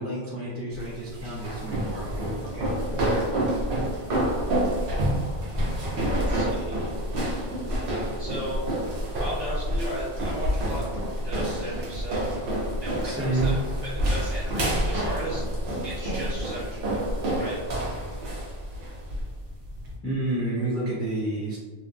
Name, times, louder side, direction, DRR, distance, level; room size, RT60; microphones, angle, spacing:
voice 1, 0.0-2.1 2.5-3.2 13.0-13.6 20.0-21.6, right 2 dB, 15° left, -10 dB, 0.5 m, -30 dB
sound 1, 0.7-20.0, right 1 dB, 60° right, 0.8 m, -28 dB
voice 2, 5.5-6.9 8.2-8.6 9.2-12.2 12.8-13.5 13.8-15.5 15.8-17.0 17.4-17.6, right 1 dB, 40° right, -9 dB, 1.0 m, -36 dB
2.8 x 2.2 x 2.4 m, 1.4 s
omnidirectional pair, 1.2 m